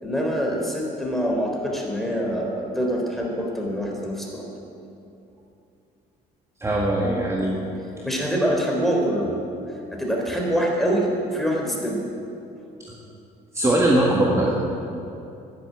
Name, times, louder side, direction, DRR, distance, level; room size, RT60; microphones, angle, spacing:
voice 1, 0.0-4.4 8.0-9.3 9.9-12.0, equal, ahead, -1 dB, 3.8 m, -25 dB
voice 2, 6.6-7.6 13.5-14.6, right 1 dB, 15° right, -3 dB, 1.9 m, -20 dB
12.0 x 10.5 x 9.5 m, 2.8 s
cardioid pair, 110°, 17 cm